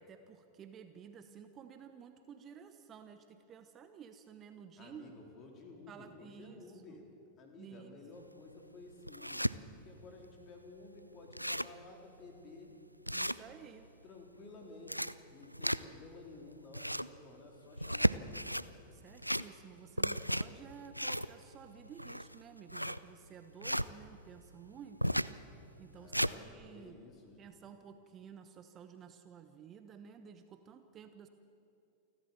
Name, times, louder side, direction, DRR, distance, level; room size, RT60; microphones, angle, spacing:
voice 1, 0.0-5.1 5.9-7.0 7.6-8.2 13.1-13.9 18.9-25.2 25.8-27.0 27.4-31.3, right 7 dB, 30° right, 8 dB, 1.0 m, -53 dB
voice 2, 4.8-7.1 7.4-9.5 9.8-12.7 13.2-13.4 14.0-18.6 25.9-27.5, left 3 dB, 30° left, 2 dB, 3.8 m, -53 dB
sound 1, 8.2-8.3 8.8-9.5 10.1-10.2 10.5-10.6 10.9-11.0 11.2-11.8 12.3-12.4 13.1-13.9 14.6-16.1 16.6-17.2 17.7-18.7 19.1-19.7 20.0-23.9 25.0-25.4 25.8-26.4, equal, 90° right, 0.4 m, -34 dB
29.0 x 12.5 x 7.2 m, 2.7 s
figure-of-eight pair, 90°, 0 cm